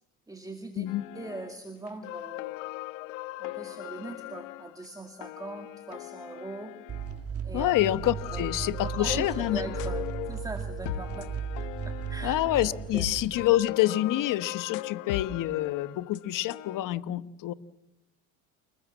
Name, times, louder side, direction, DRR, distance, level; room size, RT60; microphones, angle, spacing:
voice 1, 0.3-0.9 1.1-2.5 3.4-6.8 7.4-7.7 8.3-8.5 8.8-11.3 11.6-12.4 12.9-13.0, right 2 dB, 10° right, 5 dB, 2.3 m, -41 dB
sound 1, 0.9-1.6 1.9-7.2 7.7-16.8, left 16 dB, 90° left, 1.2 m, -39 dB
sound 2, 6.9-13.5, right 7 dB, 40° right, 2.4 m, -36 dB
voice 2, 7.5-9.6 12.2-17.5, left 14 dB, 55° left, 14 dB, 1.3 m, -27 dB
29.0 x 20.0 x 7.4 m, 0.92 s
supercardioid pair, 105°, 37 cm